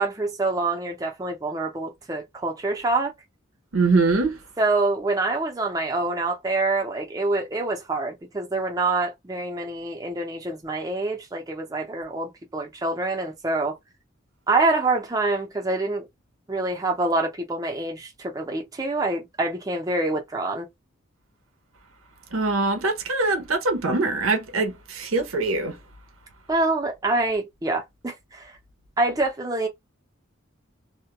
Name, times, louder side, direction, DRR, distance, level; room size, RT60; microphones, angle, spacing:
voice 1, 0.0-3.1 4.6-13.8 14.5-16.0 16.5-20.7 26.5-28.5 29.0-29.7, right 2 dB, 20° right, 0.5 m, -26 dB
voice 2, 3.7-4.4 22.3-25.8, right 3 dB, 90° right, 0.7 m, -23 dB
2.2 x 2.1 x 2.8 m
head